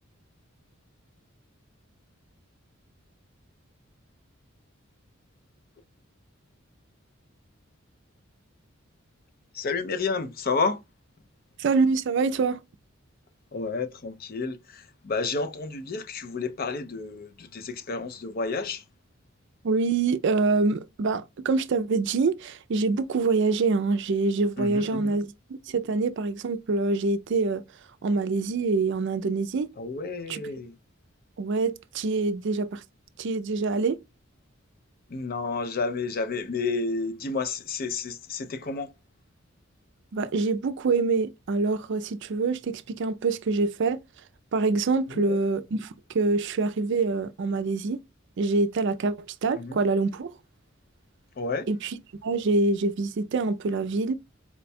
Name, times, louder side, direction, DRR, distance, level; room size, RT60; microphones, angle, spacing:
voice 1, 9.5-10.8 13.5-18.8 24.6-25.2 29.8-30.7 35.1-38.9 45.1-45.4 49.6-49.8 51.4-51.7, left 4 dB, 45° left, 0.5 m, -31 dB
voice 2, 11.6-12.6 19.6-25.3 25.7-27.6 28.0-29.7 30.3-30.4 31.4-32.8 33.2-34.0 40.1-44.0 44.5-48.0 48.4-49.1 49.4-50.4 51.7-54.1, right 3 dB, 60° right, 0.4 m, -25 dB
4.3 x 2.2 x 4.1 m
head